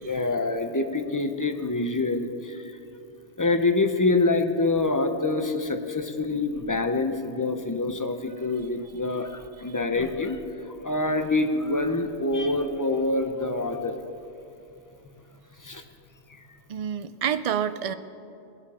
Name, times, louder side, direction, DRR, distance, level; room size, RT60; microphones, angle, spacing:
voice 1, 0.0-2.7 3.4-14.0 15.6-15.8, left 2 dB, 20° left, 6 dB, 0.6 m, -26 dB
voice 2, 16.7-17.9, right 8 dB, 70° right, 12 dB, 0.3 m, -28 dB
20.0 x 11.5 x 4.2 m, 2.7 s
omnidirectional pair, 1.2 m